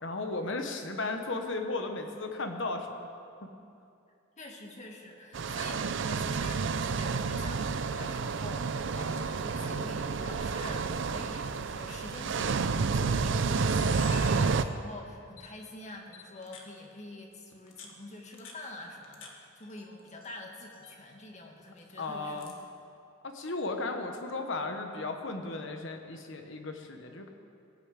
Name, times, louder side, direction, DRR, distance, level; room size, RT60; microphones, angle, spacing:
voice 1, 0.0-2.9 3.4-3.5 22.0-22.5 23.2-27.3, left 3 dB, 65° left, 5 dB, 1.1 m, -35 dB
voice 2, 4.4-22.5, left 2 dB, 35° left, 1 dB, 1.8 m, -46 dB
sound 1, 5.3-14.6, right 5 dB, 60° right, 0.5 m, -30 dB
Camera, 12.2-12.5 13.1-13.2 13.4-14.9 15.4-15.5 16.1-16.7 17.5-19.3 19.6-20.3 20.6-21.0 21.8-22.6, left 5 dB, 85° left, 1.7 m, -49 dB
18.0 x 6.8 x 8.2 m, 2.5 s
head